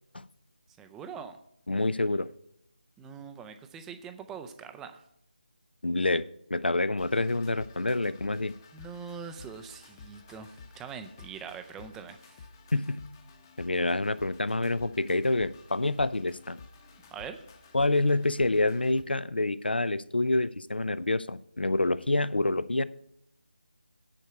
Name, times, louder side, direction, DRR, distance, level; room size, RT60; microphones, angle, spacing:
voice 1, 0.8-1.4 3.0-5.0 8.7-12.5 17.1-17.4, right 6 dB, 5° right, 8 dB, 0.4 m, -43 dB
voice 2, 1.7-2.3 5.8-6.2 6.5-8.5 12.7-13.0 13.6-16.6 17.7-22.8, left 2 dB, 85° left, 17 dB, 0.5 m, -27 dB
sound 1, 7.0-19.0, left 4 dB, 20° left, 0.8 m, -52 dB
10.0 x 4.5 x 7.6 m, 0.76 s
figure-of-eight pair, 160°, 5 cm